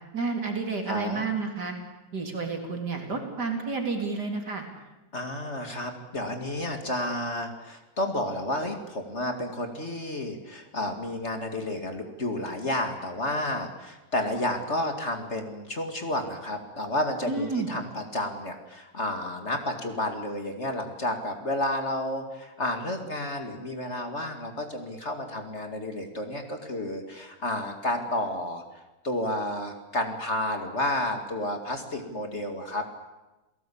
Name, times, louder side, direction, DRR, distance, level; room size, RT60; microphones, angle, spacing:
voice 1, 0.1-1.7 2.1-4.7 17.3-17.8, right 4 dB, 60° right, 3 dB, 4.1 m, -30 dB
voice 2, 0.9-1.3 5.1-28.6 29.0-33.0, left 1 dB, 35° left, 5 dB, 2.5 m, -31 dB
29.0 x 17.5 x 8.6 m, 1.1 s
omnidirectional pair, 2.0 m